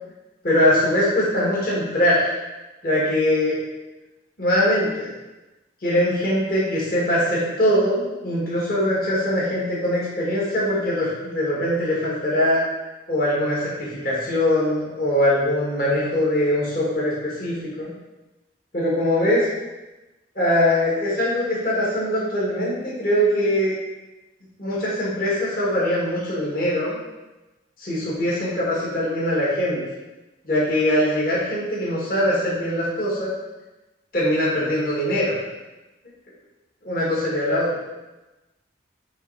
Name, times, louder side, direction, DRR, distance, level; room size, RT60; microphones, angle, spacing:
voice 1, 0.4-2.3 2.8-3.6 4.4-5.1 5.8-12.6 13.1-17.9 18.7-19.4 20.4-23.8 24.6-27.0 27.8-29.8 30.4-33.3 34.1-35.4 36.8-37.7, left 1 dB, 50° left, -8 dB, 2.0 m, -22 dB
7.1 x 3.3 x 4.8 m, 1.1 s
head